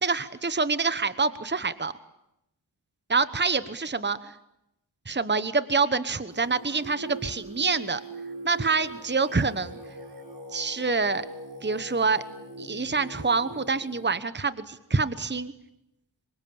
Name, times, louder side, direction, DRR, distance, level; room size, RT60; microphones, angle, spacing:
voice 1, 0.0-1.9 3.1-4.3 5.1-8.0 8.4-9.8 10.5-11.3 11.6-12.2 12.6-15.5, right 4 dB, 25° right, 13 dB, 1.0 m, -26 dB
Singing, 6.3-14.2, right 1 dB, 55° right, 6.8 m, -42 dB
26.5 x 24.0 x 8.7 m, 0.87 s
wide cardioid pair, 50°, 45 cm